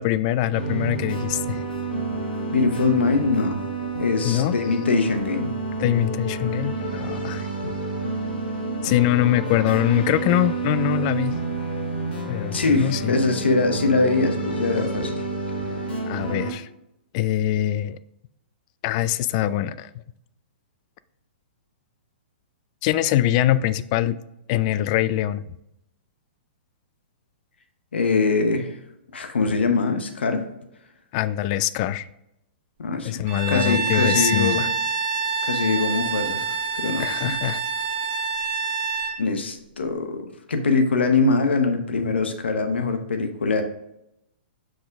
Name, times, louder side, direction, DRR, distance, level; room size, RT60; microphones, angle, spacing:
voice 1, 0.0-1.6 4.2-4.5 5.8-7.5 8.8-11.3 12.3-13.1 16.1-16.7 17.1-18.0 18.8-19.9 22.8-24.2 24.5-25.4 31.1-32.1 33.0-34.7 37.0-37.6, left 13 dB, 40° left, 16 dB, 0.3 m, -23 dB
sound 1, 0.5-16.5, right 3 dB, 65° left, 2.3 m, -29 dB
voice 2, 2.5-3.6 3.9-5.5 12.5-15.2 27.9-28.8 29.1-30.4 32.8-34.7 35.5-37.3 39.2-43.6, left 4 dB, 85° left, 6 dB, 1.0 m, -23 dB
Bowed string instrument, 33.3-39.2, right 5 dB, 35° right, 0.9 m, -26 dB
6.2 x 5.0 x 3.5 m, 0.83 s
hypercardioid pair, 135°, 6 cm